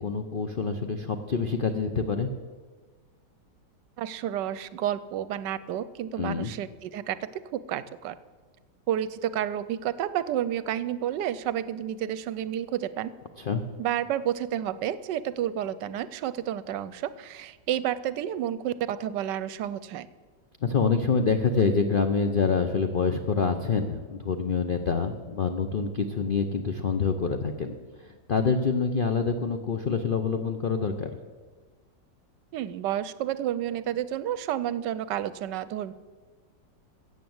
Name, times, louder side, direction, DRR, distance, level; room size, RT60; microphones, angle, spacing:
voice 1, 0.0-2.3 6.2-6.5 13.4-13.6 20.6-31.1, left 5 dB, 65° left, 7 dB, 0.5 m, -26 dB
voice 2, 4.0-7.2 7.5-8.2 8.9-13.1 13.8-20.1 32.5-35.9, right 11 dB, 75° right, 16 dB, 1.2 m, -30 dB
14.0 x 8.5 x 7.8 m, 1.4 s
omnidirectional pair, 2.0 m